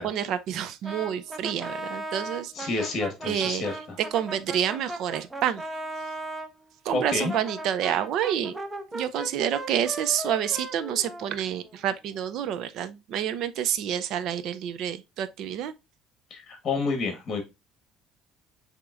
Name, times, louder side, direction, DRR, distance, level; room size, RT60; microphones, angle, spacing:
voice 1, 0.0-2.9 3.2-3.7 4.0-5.6 6.8-8.5 8.9-15.7, right 9 dB, 60° right, 0.5 m, -28 dB
Brass instrument, 0.8-6.5 7.0-11.8, right 2 dB, 10° right, 0.7 m, -37 dB
voice 2, 2.5-4.0 6.9-7.3 16.3-17.4, left 3 dB, 30° left, 1.3 m, -29 dB
6.8 x 2.9 x 2.5 m
cardioid pair, 125°, 0 cm